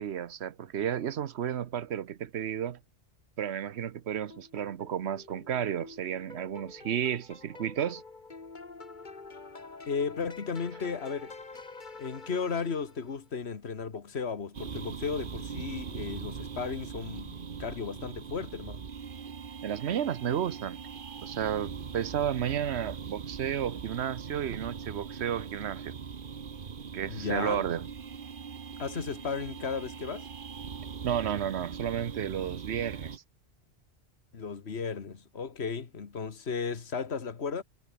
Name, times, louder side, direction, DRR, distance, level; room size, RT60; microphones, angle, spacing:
voice 1, 0.0-2.8 3.4-8.0 19.6-20.8 21.2-25.9 26.9-27.9 31.0-33.2, right 9 dB, 80° right, 1.1 m, -32 dB
sound 1, 4.3-13.2, left 3 dB, 45° left, 1.9 m, -48 dB
voice 2, 9.9-11.3 12.0-18.9 27.1-27.6 28.8-30.3 34.3-37.6, left 5 dB, 75° left, 1.9 m, -35 dB
sound 2, 14.5-33.2, right 6 dB, 55° right, 1.2 m, -41 dB
omnidirectional pair, 1.1 m